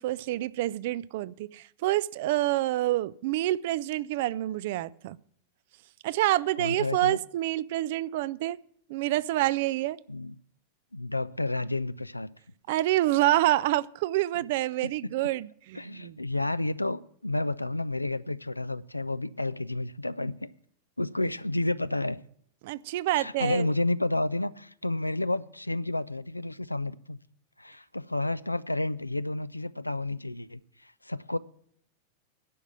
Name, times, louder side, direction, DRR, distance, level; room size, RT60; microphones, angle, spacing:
voice 1, 0.0-5.2 6.0-8.6 8.9-10.0 12.7-16.2 22.6-23.7, right 15 dB, 50° right, 0.4 m, -27 dB
voice 2, 6.6-7.2 10.1-10.3 10.9-12.3 14.8-14.9 15.7-20.5 21.0-22.2 23.1-27.2 27.6-31.4, left 2 dB, 85° left, 0.4 m, -31 dB
11.0 x 6.0 x 8.8 m
figure-of-eight pair, 90°, 0 cm